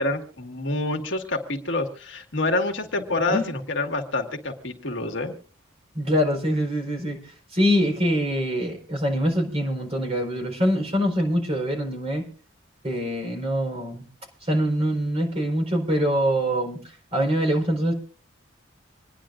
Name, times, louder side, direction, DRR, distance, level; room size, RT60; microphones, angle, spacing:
voice 1, 0.0-5.3, left 2 dB, 70° left, 4 dB, 1.7 m, -27 dB
voice 2, 3.1-3.4 5.9-7.2 7.5-12.2 12.8-14.0 14.5-16.8 17.1-17.9, equal, 30° right, 2 dB, 4.3 m, -24 dB
26.5 x 10.0 x 2.5 m, 0.40 s
head